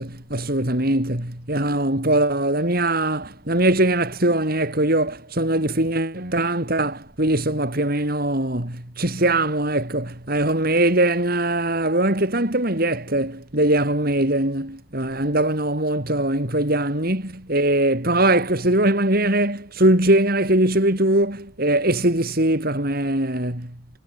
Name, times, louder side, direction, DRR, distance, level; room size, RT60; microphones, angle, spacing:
voice 1, 0.0-23.7, right 1 dB, 45° right, 4.2 m, -21 dB
head